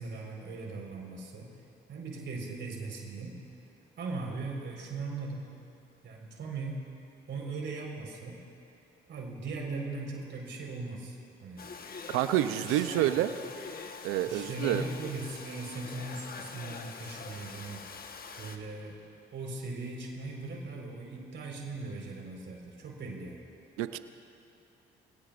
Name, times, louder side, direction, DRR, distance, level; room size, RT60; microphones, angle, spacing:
voice 1, 0.0-1.5 1.9-3.4 4.0-5.5 6.0-6.8 7.3-8.4 9.1-11.7 12.6-13.1 14.3-17.8 18.4-19.0 19.3-23.5, right 3 dB, 65° right, -1 dB, 4.4 m, -39 dB
Domestic sounds home sounds, 11.6-18.6, left 5 dB, 45° left, 1.3 m, -44 dB
voice 2, 12.1-13.3 14.0-14.8 23.8-24.0, right 13 dB, 85° right, 11 dB, 0.6 m, -28 dB
29.0 x 17.5 x 2.5 m, 2.8 s
supercardioid pair, 65°, 21 cm